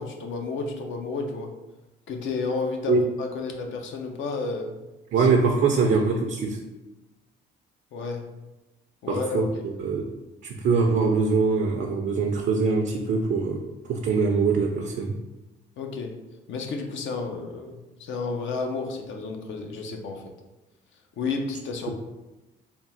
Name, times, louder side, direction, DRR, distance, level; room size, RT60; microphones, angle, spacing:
voice 1, 0.0-1.5 2.1-4.7 5.2-5.3 5.7-5.8 6.1-6.3 7.9-8.3 9.0-9.6 15.8-16.2 16.5-20.3 21.2-21.9, left 4 dB, 75° left, 3 dB, 0.7 m, -31 dB
voice 2, 5.1-6.6 9.1-10.1 10.4-13.6 13.9-15.1, right 4 dB, 65° right, 2 dB, 0.5 m, -23 dB
3.6 x 2.3 x 4.2 m, 1.0 s
cardioid pair, 90°, 20 cm